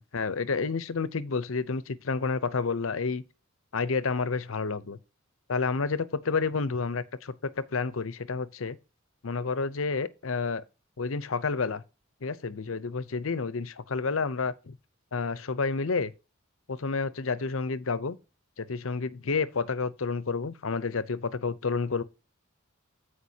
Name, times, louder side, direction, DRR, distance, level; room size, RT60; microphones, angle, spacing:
voice 1, 0.0-3.2 3.7-5.0 5.5-8.8 9.2-10.6 11.0-11.8 12.2-14.7 15.1-16.1 16.7-18.2 18.6-22.0, left 4 dB, 70° left, 0.7 m, -30 dB
14.5 x 5.0 x 2.8 m
head